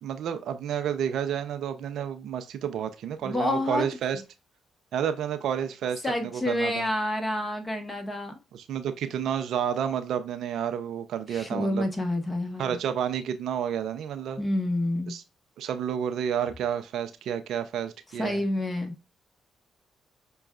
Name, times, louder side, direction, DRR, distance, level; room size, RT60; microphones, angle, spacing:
voice 1, 0.0-4.2 4.9-6.9 8.5-11.9 12.6-14.4 15.1-15.2 15.6-18.4, right 8 dB, 70° right, 0.5 m, -30 dB
voice 2, 3.2-3.9 6.0-8.3 11.3-12.8 14.4-15.2 18.2-18.9, left 1 dB, 25° left, 1.2 m, -28 dB
6.0 x 2.3 x 2.4 m
supercardioid pair, 50°, 0 cm